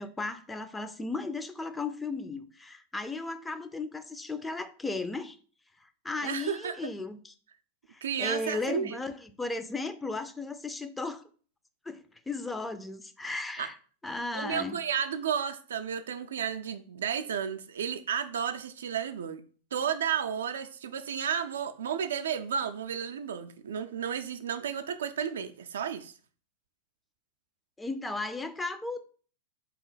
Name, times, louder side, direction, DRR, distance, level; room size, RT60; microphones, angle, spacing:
voice 1, 0.0-5.4 6.0-7.3 7.9-11.2 11.9-13.8 14.0-14.8 27.8-29.1, left 3 dB, 10° left, 0.4 m, -35 dB
voice 2, 6.2-6.9 8.0-9.0 13.6-13.7 14.3-19.4 19.7-26.1, right 8 dB, 80° right, 0.4 m, -32 dB
3.8 x 2.9 x 3.9 m
hypercardioid pair, 100°, 0 cm